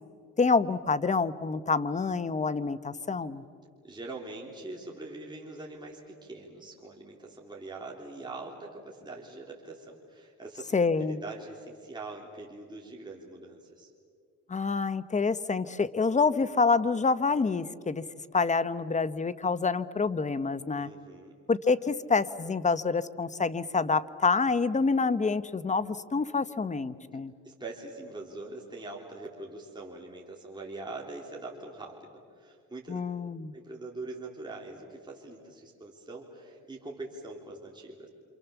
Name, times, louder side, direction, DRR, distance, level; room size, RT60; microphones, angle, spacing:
voice 1, 0.4-3.4 10.7-11.2 14.5-18.0 18.3-20.9 21.5-27.3 32.9-33.5, left 4 dB, 25° left, 14 dB, 1.0 m, -27 dB
voice 2, 3.8-13.9 20.8-21.3 27.4-32.0 32.4-33.0 33.5-38.1, right 2 dB, 15° right, -2 dB, 3.7 m, -43 dB
28.5 x 27.5 x 7.2 m, 2.2 s
cardioid pair, 90°, 30 cm